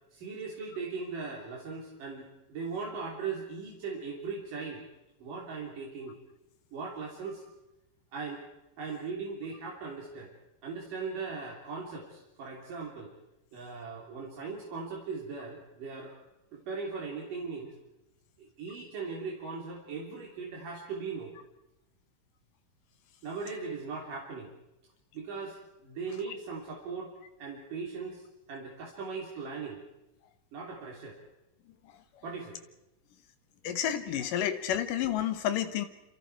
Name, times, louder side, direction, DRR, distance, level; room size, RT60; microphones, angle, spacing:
voice 1, 0.1-4.8 5.2-6.2 6.7-7.4 8.1-8.4 8.8-10.3 10.6-13.1 13.5-16.2 16.5-17.7 18.4-21.3 23.2-24.5 25.1-25.6 25.8-27.1 27.4-29.8 30.5-31.2 32.2-32.6, right 4 dB, 80° right, -2 dB, 4.8 m, -39 dB
voice 2, 31.8-32.2 33.6-35.9, left 10 dB, 85° left, 9 dB, 2.9 m, -31 dB
28.0 x 27.0 x 4.7 m, 0.89 s
omnidirectional pair, 3.7 m